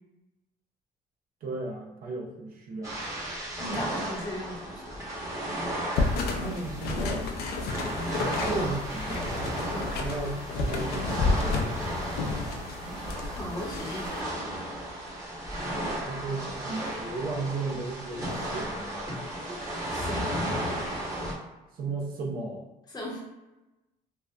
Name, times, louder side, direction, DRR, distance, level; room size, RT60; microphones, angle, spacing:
voice 1, 1.4-3.0 6.3-7.3 8.4-9.5 10.0-12.5 16.0-19.0 21.7-22.6, right 3 dB, 60° right, -1 dB, 0.6 m, -35 dB
sound 1, 2.8-21.3, right 1 dB, 20° right, 0.8 m, -34 dB
voice 2, 3.6-5.1 9.7-10.0 13.1-14.5 19.9-20.6 22.9-23.2, left 1 dB, 25° left, -3 dB, 0.7 m, -38 dB
sound 2, 5.9-14.2, left 3 dB, 70° left, 0.4 m, -31 dB
2.8 x 2.0 x 2.3 m, 1.0 s
cardioid pair, 110°, 17 cm